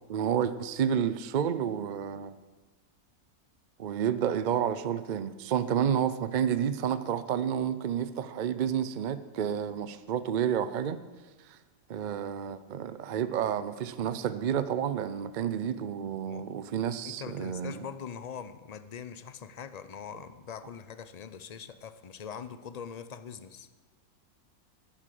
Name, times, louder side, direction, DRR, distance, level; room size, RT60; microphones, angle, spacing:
voice 1, 0.1-2.3 3.8-11.0 11.5-11.6 11.9-17.9, right 8 dB, 70° right, 13 dB, 0.4 m, -30 dB
voice 2, 17.0-23.7, left 7 dB, 50° left, 12 dB, 0.5 m, -42 dB
11.5 x 11.5 x 7.6 m, 1.3 s
omnidirectional pair, 1.6 m